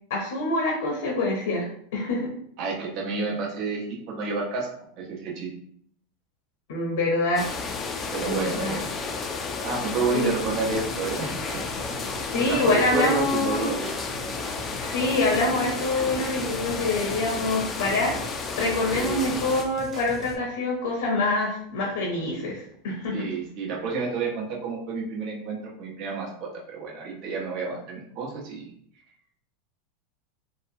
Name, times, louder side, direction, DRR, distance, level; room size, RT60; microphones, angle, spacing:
voice 1, 0.1-2.3 6.7-7.5 8.2-8.8 10.1-10.4 12.1-13.8 14.8-18.2 18.6-23.2, left 2 dB, 75° left, -2 dB, 0.8 m, -26 dB
voice 2, 2.6-4.7 5.0-5.5 8.1-8.9 9.6-11.6 12.3-13.9 18.9-19.2 23.1-28.7, right 4 dB, 55° right, -3 dB, 1.0 m, -30 dB
sound 1, 7.4-19.6, left 4 dB, 30° left, 0.4 m, -32 dB
sound 2, 10.7-20.4, right 2 dB, 35° right, 0.6 m, -42 dB
2.8 x 2.2 x 2.6 m, 0.66 s
hypercardioid pair, 100°, 0 cm